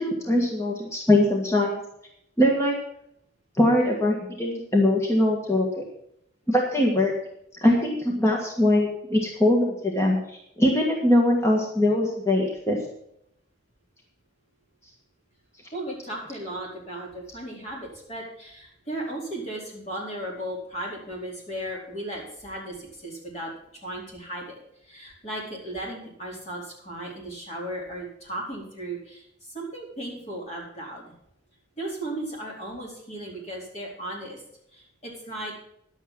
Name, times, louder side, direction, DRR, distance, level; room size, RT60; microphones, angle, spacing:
voice 1, 0.0-1.8 2.4-2.7 3.6-5.8 6.5-7.1 7.6-12.8, left 1 dB, 15° left, -1 dB, 1.6 m, -22 dB
voice 2, 15.7-23.5 23.8-31.1 31.8-34.4 34.7-35.5, right 1 dB, 35° left, -3 dB, 4.5 m, -36 dB
11.5 x 8.4 x 6.1 m, 0.76 s
head